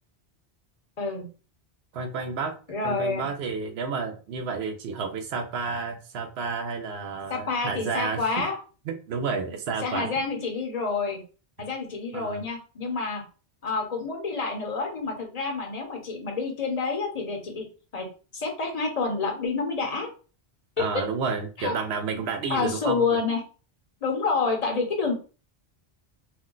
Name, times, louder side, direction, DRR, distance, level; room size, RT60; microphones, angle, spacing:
voice 1, 1.9-2.5 2.8-8.4 8.9-10.1 12.1-12.4 20.8-23.2, right 5 dB, 75° right, 7 dB, 0.9 m, -31 dB
voice 2, 2.7-3.3 7.3-8.6 9.8-11.2 11.6-13.2 13.6-17.7 17.9-18.1 18.3-20.1 20.8-20.9 21.6-21.7 22.5-23.4 24.0-25.1, left 4 dB, 40° left, 2 dB, 0.7 m, -28 dB
2.5 x 2.2 x 3.7 m, 0.36 s
omnidirectional pair, 1.1 m